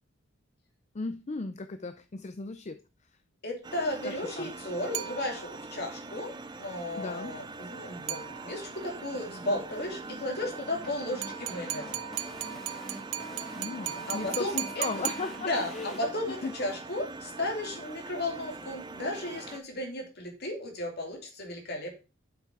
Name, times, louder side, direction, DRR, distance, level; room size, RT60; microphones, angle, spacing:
voice 1, 0.9-2.8 4.0-4.5 7.0-7.3 13.6-16.0 16.4-16.5, left 3 dB, 35° left, 10 dB, 0.5 m, -36 dB
voice 2, 3.4-12.0 14.1-15.0 15.4-22.0, left 1 dB, 55° left, 2 dB, 2.6 m, -34 dB
sound 1, 3.6-19.6, right 3 dB, 20° right, 0.6 m, -43 dB
sound 2, 4.9-5.8 8.1-8.8 11.2-15.8, right 13 dB, 85° right, 0.5 m, -37 dB
sound 3, 9.1-16.0, equal, ahead, 1.7 m, -47 dB
7.8 x 6.1 x 4.7 m, 0.31 s
head